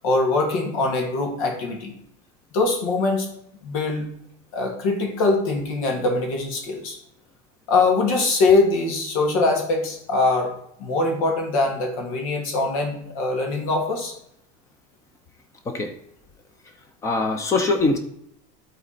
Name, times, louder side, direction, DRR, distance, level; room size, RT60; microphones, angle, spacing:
voice 1, 0.0-1.9 2.5-3.3 3.6-4.1 4.5-7.0 7.7-10.5 10.8-14.1, left 3 dB, 75° left, 2 dB, 2.4 m, -22 dB
voice 2, 17.0-18.0, left 3 dB, 15° left, 6 dB, 0.8 m, -22 dB
11.0 x 4.1 x 4.3 m, 0.73 s
supercardioid pair, 175°, 18 cm